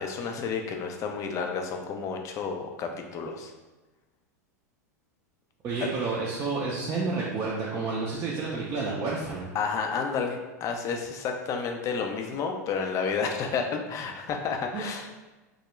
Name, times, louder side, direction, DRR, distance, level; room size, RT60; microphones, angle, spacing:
voice 1, 0.0-3.5 9.5-15.2, left 5 dB, 35° left, 3 dB, 0.4 m, -31 dB
voice 2, 5.6-9.5 14.7-14.9, right 4 dB, 35° right, -6 dB, 0.5 m, -30 dB
2.3 x 2.0 x 3.0 m, 1.2 s
hypercardioid pair, 100°, 9 cm